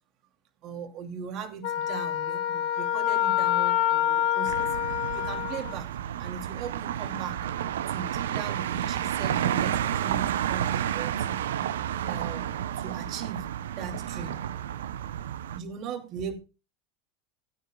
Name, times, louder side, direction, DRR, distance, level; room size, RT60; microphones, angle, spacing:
voice 1, 0.6-4.8 5.1-5.9 6.2-7.5 7.9-11.6 12.0-13.5 13.7-14.4 15.5-16.3, right 7 dB, 50° right, 4 dB, 2.5 m, -39 dB
Wind instrument woodwind instrument, 1.6-5.8, left 11 dB, 65° left, 2.1 m, -26 dB
sound 1, 4.5-15.6, right 10 dB, 80° right, 0.6 m, -31 dB
19.0 x 9.4 x 2.3 m, 0.31 s
hypercardioid pair, 95°, 0 cm